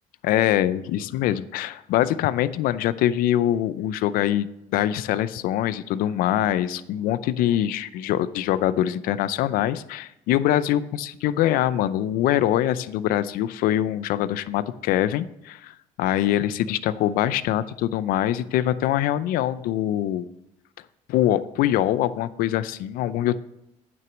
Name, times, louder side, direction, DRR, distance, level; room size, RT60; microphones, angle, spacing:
voice 1, 0.2-4.5 4.7-20.3 21.1-23.4, left 12 dB, 75° left, 16 dB, 0.5 m, -23 dB
9.3 x 6.0 x 6.2 m, 0.85 s
cardioid pair, 95°, 15 cm